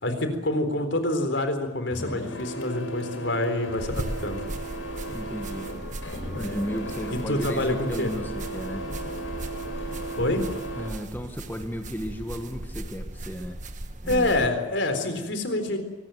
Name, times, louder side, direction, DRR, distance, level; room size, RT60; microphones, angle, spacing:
voice 1, 0.0-4.4 7.3-8.1 10.1-10.4 14.1-15.8, left 1 dB, 65° left, 8 dB, 4.0 m, -26 dB
Printer, 1.9-10.9, right 2 dB, 90° left, 5.7 m, -35 dB
sound 1, 3.8-14.5, right 1 dB, 40° right, 1.5 m, -38 dB
voice 2, 5.1-5.7 6.3-8.9 10.7-13.6 14.0-14.5, equal, 10° left, 5 dB, 1.4 m, -35 dB
23.5 x 19.0 x 9.2 m, 1.1 s
head